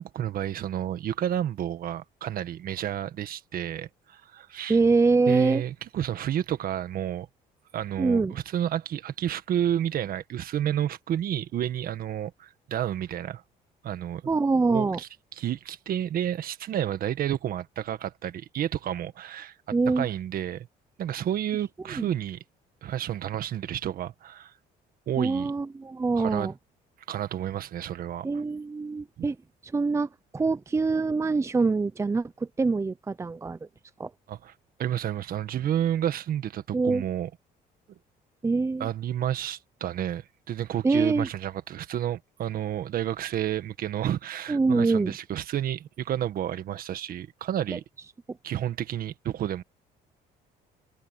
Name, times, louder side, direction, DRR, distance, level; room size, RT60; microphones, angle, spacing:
voice 1, 0.0-4.8 5.3-7.3 7.7-13.4 13.8-14.2 14.7-15.1 15.4-19.5 20.0-20.7 21.0-22.4 22.8-24.5 25.1-25.5 26.1-26.5 27.1-28.3 29.2-29.3 34.3-34.5 34.8-37.3 38.8-47.8 48.4-49.6, right 10 dB, 60° right, 1.7 m, -30 dB
voice 2, 4.7-5.6 8.0-8.3 14.3-15.0 19.7-20.1 21.9-22.1 25.2-26.5 28.2-29.4 29.6-33.6 34.0-34.1 36.7-37.0 38.4-38.9 40.8-41.3 44.5-45.1 47.7-47.8, right 3 dB, 15° right, 0.6 m, -24 dB
cardioid pair, 110°, 17 cm